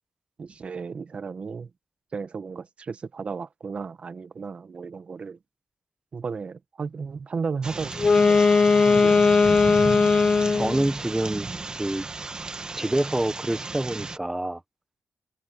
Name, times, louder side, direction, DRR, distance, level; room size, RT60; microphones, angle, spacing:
voice 1, 0.4-1.7 2.1-5.4 6.1-8.5 8.9-9.1, right 5 dB, 50° right, 1.3 m, -34 dB
sound 1, 7.6-14.2, right 3 dB, 35° right, 1.7 m, -34 dB
Wind instrument woodwind instrument, 7.9-10.9, left 4 dB, 40° left, 0.4 m, -18 dB
voice 2, 8.8-9.3 10.5-11.5 11.8-12.0 12.7-14.6, right 1 dB, 10° right, 1.0 m, -27 dB
cardioid pair, 95°, 3 cm